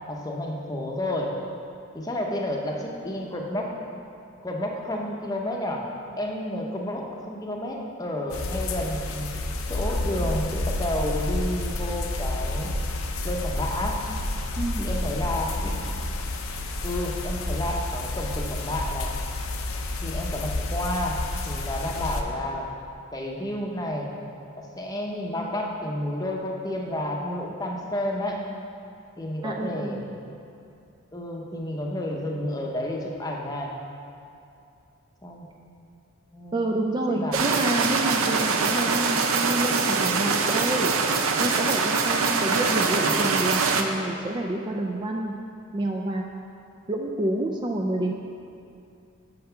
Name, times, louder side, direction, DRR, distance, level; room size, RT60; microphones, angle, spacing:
voice 1, 0.1-1.3 1.9-3.7 4.4-5.8 6.2-9.3 9.7-12.7 13.2-14.0 14.8-15.8 16.8-19.1 20.0-21.2 21.5-22.7 23.1-24.1 24.5-28.4 29.2-30.1 31.1-33.7 35.2-35.5 36.3-37.4 42.8-43.3, left 1 dB, 15° left, 0 dB, 0.7 m, -31 dB
sound 1, 8.3-22.2, left 2 dB, 85° left, 0.6 m, -30 dB
voice 2, 14.6-14.9 29.4-30.0 36.5-40.9 41.4-45.4 45.7-46.2 46.9-48.1, right 1 dB, 20° right, 1 dB, 0.3 m, -28 dB
sound 2, 37.3-43.8, right 4 dB, 80° right, 0.6 m, -23 dB
6.4 x 5.7 x 5.7 m, 2.6 s
head